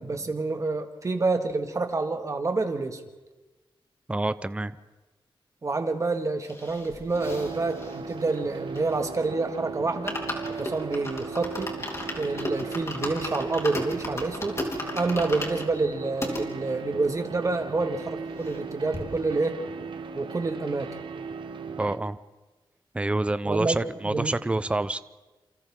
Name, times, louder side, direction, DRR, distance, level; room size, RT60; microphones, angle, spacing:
voice 1, 0.0-3.0 5.6-10.2 10.5-11.7 12.2-14.6 15.0-19.6 20.1-21.0 23.4-23.8 24.0-24.4, right 3 dB, 35° right, 5 dB, 1.9 m, -28 dB
voice 2, 4.1-4.7 21.8-22.2 22.9-25.0, right 2 dB, 15° right, 14 dB, 0.6 m, -27 dB
sound 1, 6.4-9.2 9.5-9.6 9.9-16.4 17.0-17.1 17.3-17.4 17.7-18.7 18.9-19.0, left 1 dB, 30° left, 3.6 m, -35 dB
sound 2, 7.1-22.0, right 5 dB, 60° right, 1.2 m, -37 dB
28.0 x 28.0 x 3.7 m, 1.2 s
wide cardioid pair, 110°, 9 cm